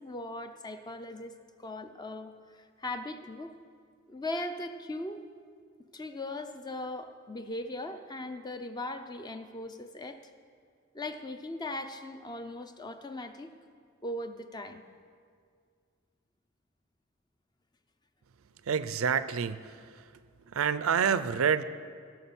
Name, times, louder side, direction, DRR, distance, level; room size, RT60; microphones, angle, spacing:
voice 1, 0.0-2.3 2.8-3.5 4.1-5.2 5.9-10.2 10.9-13.5 14.0-14.8, left 1 dB, 20° left, 8 dB, 0.6 m, -39 dB
voice 2, 18.6-20.1 20.4-21.6, right 7 dB, 85° right, 14 dB, 0.5 m, -28 dB
16.0 x 6.4 x 7.0 m, 2.1 s
head